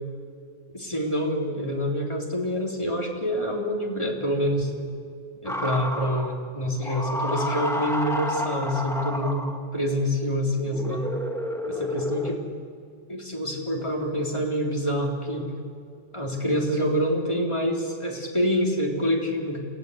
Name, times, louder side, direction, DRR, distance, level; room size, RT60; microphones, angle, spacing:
voice 1, 0.7-4.7 5.4-11.0 11.7-12.4 13.1-15.5 16.1-19.6, equal, 25° left, -2 dB, 3.9 m, -26 dB
sound 1, 5.5-6.4 6.8-9.7 10.7-12.3, left 1 dB, ahead, 1.8 m, -30 dB
28.5 x 16.0 x 8.2 m, 2.2 s
omnidirectional pair, 1.3 m